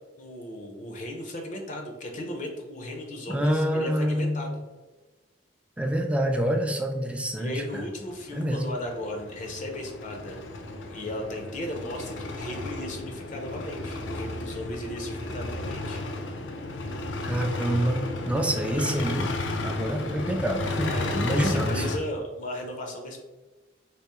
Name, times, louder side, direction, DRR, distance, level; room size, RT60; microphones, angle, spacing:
voice 1, 0.2-4.5 7.4-10.6 10.9-16.0 20.8-23.2, left 1 dB, 45° left, 3 dB, 0.6 m, -36 dB
voice 2, 3.3-4.5 5.8-7.8 8.3-8.6 17.2-19.3 19.6-21.9, equal, 5° right, 3 dB, 0.4 m, -27 dB
sound 1, 7.4-22.0, left 2 dB, 90° left, 0.5 m, -33 dB
3.4 x 3.0 x 2.9 m, 1.2 s
head